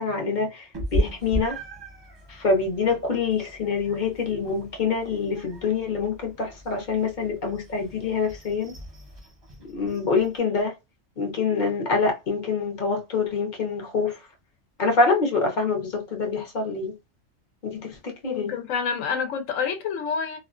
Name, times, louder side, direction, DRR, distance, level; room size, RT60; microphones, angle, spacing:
voice 1, 0.0-1.6 2.3-8.7 9.6-10.7 11.2-14.2 14.8-17.0 17.6-18.6, left 4 dB, 45° left, 0.7 m, -25 dB
Meow, 0.7-10.4, equal, 25° right, 0.6 m, -36 dB
voice 2, 18.3-20.4, left 6 dB, 80° left, 1.0 m, -28 dB
2.4 x 2.2 x 2.3 m
omnidirectional pair, 1.3 m